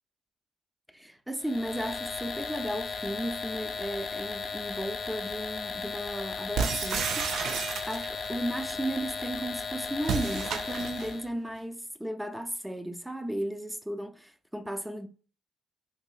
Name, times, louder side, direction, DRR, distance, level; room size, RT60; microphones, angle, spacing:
voice 1, 0.9-7.6 7.9-15.1, right 1 dB, 5° right, 0.4 m, -35 dB
sound 1, 1.4-11.3, left 5 dB, 60° left, 0.5 m, -36 dB
sound 2, 6.6-8.3 10.0-11.2, right 6 dB, 75° right, 0.4 m, -31 dB
3.8 x 2.9 x 2.3 m
cardioid pair, 80°, 0 cm